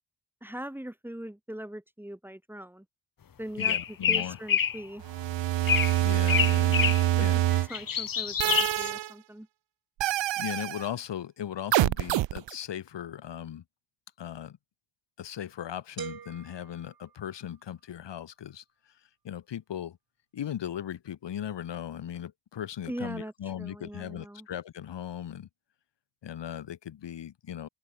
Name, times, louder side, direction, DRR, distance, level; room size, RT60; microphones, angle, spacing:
voice 1, 0.4-2.9 3.4-5.0 7.2-7.4 7.7-9.5 22.9-23.3 23.6-24.5, right 1 dB, 5° right, 7.2 m, -40 dB
voice 2, 3.6-4.4 6.0-7.4 10.0-13.6 14.2-14.6 15.2-18.6 19.2-20.0 20.3-25.5 26.2-27.7, left 10 dB, 75° left, 3.6 m, -38 dB
sound 1, 3.6-4.8 5.7-6.0 6.3-7.1 7.5-8.9, left 8 dB, 50° left, 2.1 m, -27 dB
sound 2, 5.0-7.7 8.4-9.1 10.0-10.8 11.7-12.5, right 14 dB, 80° right, 0.8 m, -25 dB
sound 3, 16.0-17.8, right 7 dB, 55° right, 6.4 m, -44 dB
open air
wide cardioid pair, 125°, 43 cm